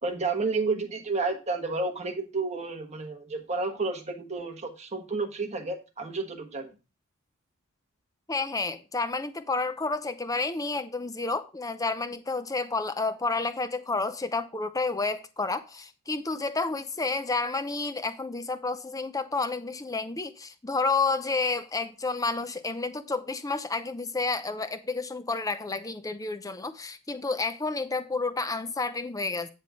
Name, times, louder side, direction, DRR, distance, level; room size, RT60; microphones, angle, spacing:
voice 1, 0.0-6.7, right 3 dB, 30° right, 1.3 m, -31 dB
voice 2, 8.3-29.5, left 3 dB, 15° left, 0.6 m, -30 dB
9.6 x 3.5 x 6.3 m
head